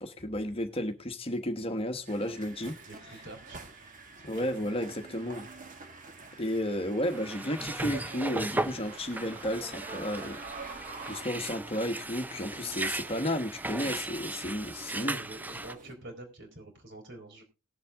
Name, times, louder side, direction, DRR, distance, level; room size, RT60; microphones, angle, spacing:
voice 1, 0.0-2.7 4.2-5.5 6.4-10.4 11.1-15.2, left 1 dB, 25° left, 1.2 m, -33 dB
sound 1, 2.1-15.9, right 4 dB, 40° right, 1.7 m, -47 dB
voice 2, 2.9-3.6 4.2-4.5 14.8-17.4, right 2 dB, 55° right, 4.2 m, -47 dB
sound 2, 7.0-15.7, right 2 dB, 10° right, 0.5 m, -37 dB
19.5 x 7.5 x 3.5 m
head